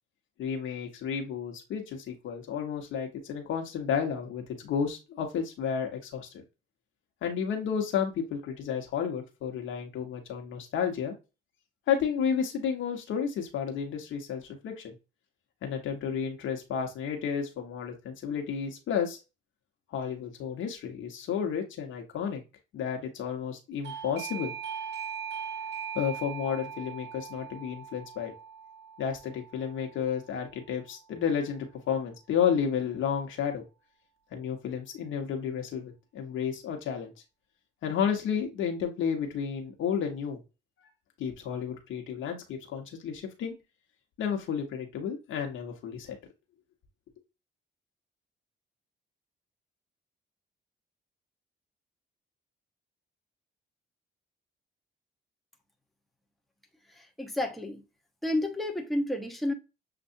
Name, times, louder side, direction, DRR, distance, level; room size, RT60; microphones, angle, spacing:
voice 1, 0.4-6.4 7.2-11.1 11.9-15.0 15.6-19.2 19.9-22.4 22.7-24.5 25.9-28.3 29.0-33.6 34.3-37.1 37.8-40.4 41.2-43.5 44.2-46.2, left 7 dB, 80° left, 1.2 m, -32 dB
Doorbell, 23.8-30.3, right 7 dB, 60° right, 1.5 m, -40 dB
voice 2, 56.9-57.8 58.2-59.5, left 1 dB, ahead, 0.9 m, -31 dB
6.8 x 2.6 x 2.6 m
cardioid pair, 90°, 20 cm